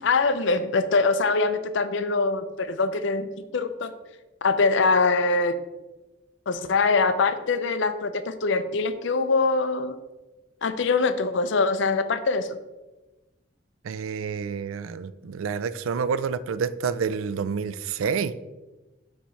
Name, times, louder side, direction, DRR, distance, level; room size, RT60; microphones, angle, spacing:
voice 1, 0.0-3.3 3.5-3.9 4.4-5.6 6.5-10.0 10.6-12.6, left 4 dB, 65° left, 11 dB, 0.5 m, -23 dB
voice 2, 13.8-18.3, right 6 dB, 85° right, 16 dB, 0.4 m, -28 dB
7.2 x 3.1 x 5.5 m, 1.1 s
head